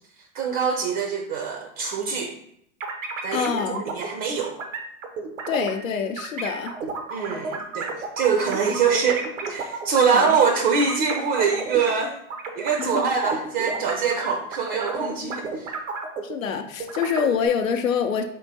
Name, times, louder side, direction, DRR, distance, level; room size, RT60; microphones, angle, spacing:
voice 1, 0.3-2.3 3.2-4.6 7.1-7.9 8.2-12.2 12.6-15.7, right 6 dB, 45° right, 3 dB, 0.6 m, -24 dB
sound 1, 2.8-3.6 3.9-4.1 4.6-5.9 6.2-11.9 12.3-16.5 16.8-17.5, right 4 dB, 75° right, 0.8 m, -32 dB
voice 2, 3.3-3.8 5.5-6.7 10.1-10.3 12.8-13.1 16.2-18.2, left 7 dB, 90° left, 5 dB, 0.5 m, -25 dB
3.6 x 3.5 x 2.7 m, 0.74 s
hypercardioid pair, 100°, 39 cm